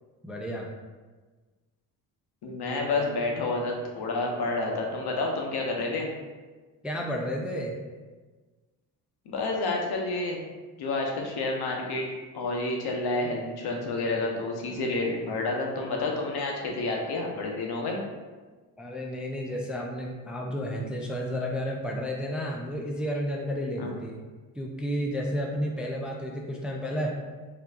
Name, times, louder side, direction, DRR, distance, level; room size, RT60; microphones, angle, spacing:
voice 1, 0.2-0.7 2.9-3.0 6.8-7.8 18.8-24.2 24.5-27.1, equal, ahead, -1 dB, 0.4 m, -32 dB
voice 2, 2.4-6.1 9.3-10.4 10.8-12.1 12.3-18.0 23.8-23.9, left 2 dB, 65° left, 0 dB, 0.9 m, -29 dB
4.3 x 2.7 x 2.4 m, 1.3 s
supercardioid pair, 75°, 42 cm